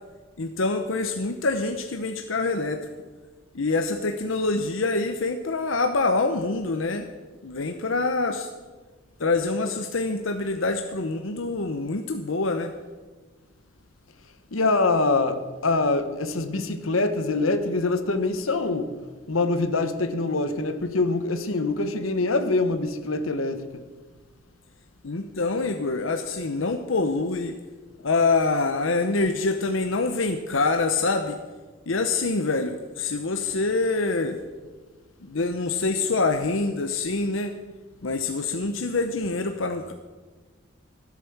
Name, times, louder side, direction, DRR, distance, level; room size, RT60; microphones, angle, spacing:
voice 1, 0.4-2.8 3.5-7.1 7.4-8.5 9.2-12.7 25.0-27.6 28.0-31.4 31.9-34.4 35.2-37.6 38.0-39.9, left 3 dB, 70° left, 0.9 m, -25 dB
voice 2, 14.5-18.9 19.3-23.8, left 3 dB, 90° left, 1.2 m, -24 dB
15.0 x 8.4 x 7.1 m
head